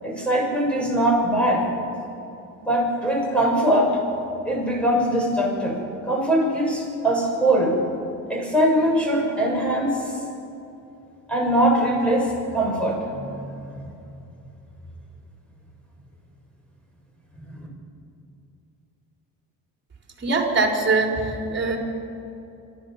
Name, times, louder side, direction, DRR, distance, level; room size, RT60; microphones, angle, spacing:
voice 1, 0.0-1.7 2.6-4.0 4.5-5.8 6.0-7.8 8.3-10.1 11.3-13.7 17.5-17.7, right 1 dB, 5° left, -2 dB, 6.7 m, -22 dB
voice 2, 20.2-21.8, right 3 dB, 30° right, 1 dB, 4.2 m, -22 dB
26.0 x 13.5 x 7.4 m, 2.8 s
cardioid pair, 105°, 36 cm